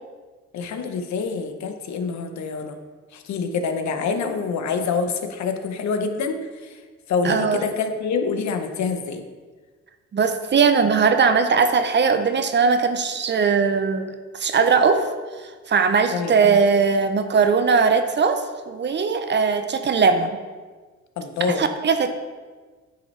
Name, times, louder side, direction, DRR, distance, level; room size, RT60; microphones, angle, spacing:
voice 1, 0.5-2.8 3.1-6.8 7.1-9.2 16.1-16.3 21.2-21.6, left 5 dB, 65° left, 7 dB, 0.8 m, -26 dB
voice 2, 7.2-7.6 10.1-14.0 14.3-15.1 15.7-20.3 21.5-22.1, right 5 dB, 35° right, 9 dB, 0.6 m, -19 dB
9.0 x 5.2 x 3.2 m, 1.4 s
cardioid pair, 90°, 30 cm